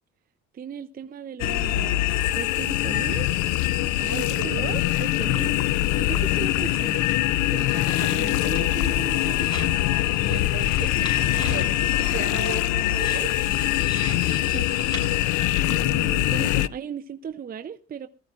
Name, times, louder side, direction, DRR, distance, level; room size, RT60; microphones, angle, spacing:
voice 1, 0.5-3.3 4.1-7.1 7.5-9.6 14.5-14.8 15.6-18.1, right 8 dB, 30° right, 0.6 m, -37 dB
sound 1, 1.4-16.7, left 15 dB, 80° left, 0.5 m, -23 dB
voice 2, 4.0-4.8 10.2-13.3, right 9 dB, 70° right, 3.6 m, -35 dB
sound 2, 7.8-8.2 8.5-15.1, equal, 15° left, 6.7 m, -39 dB
20.5 x 14.0 x 2.5 m
cardioid pair, 115°, 30 cm